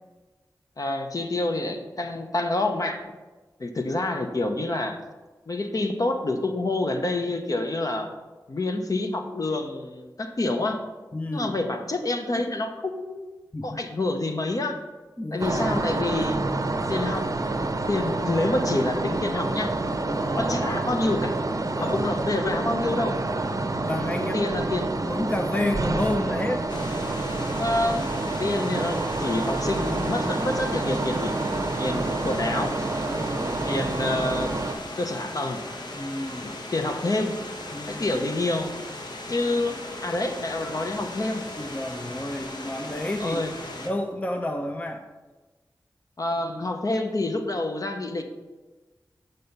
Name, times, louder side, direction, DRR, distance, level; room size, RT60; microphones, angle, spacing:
voice 1, 0.8-3.0 3.6-5.0 5.5-8.1 8.5-10.8 11.3-13.3 13.6-14.8 15.3-16.4 16.9-17.3 17.9-19.7 20.4-21.3 21.8-23.2 24.3-24.9 27.6-28.1 28.4-31.4 31.8-32.8 33.6-34.6 35.0-35.6 36.4-37.4 37.8-38.7 39.3-41.4 43.2-43.5 46.2-48.2, left 2 dB, 50° left, 5 dB, 0.8 m, -27 dB
voice 2, 11.1-11.6 13.5-13.8 15.2-15.8 20.1-20.5 21.6-22.0 23.8-24.5 25.0-26.7 33.1-33.6 35.9-36.5 37.7-38.2 41.6-43.4 43.7-45.0, left 1 dB, 20° left, 5 dB, 0.5 m, -30 dB
sound 1, 15.4-34.7, right 2 dB, 50° right, 0.6 m, -28 dB
sound 2, 26.7-43.9, left 1 dB, 70° left, 1.0 m, -38 dB
6.4 x 5.3 x 5.6 m, 1.2 s
wide cardioid pair, 65°, 8 cm